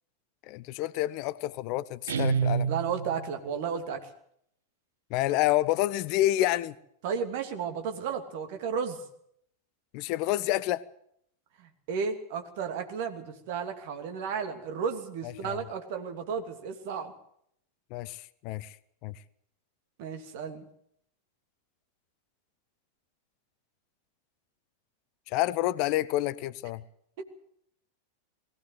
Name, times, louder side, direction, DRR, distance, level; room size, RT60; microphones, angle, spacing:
voice 1, 0.5-2.7 5.1-6.7 9.9-10.8 15.4-15.6 17.9-18.7 19.0-19.1 25.3-26.8, left 15 dB, 45° left, 0.7 m, -28 dB
Guitar, 2.1-3.3, right 7 dB, 65° right, 1.2 m, -28 dB
voice 2, 2.7-4.1 7.0-9.0 11.6-17.1 20.0-20.7 27.2-27.3, right 6 dB, 50° right, 2.8 m, -33 dB
21.0 x 16.5 x 8.0 m
figure-of-eight pair, 90°, 0 cm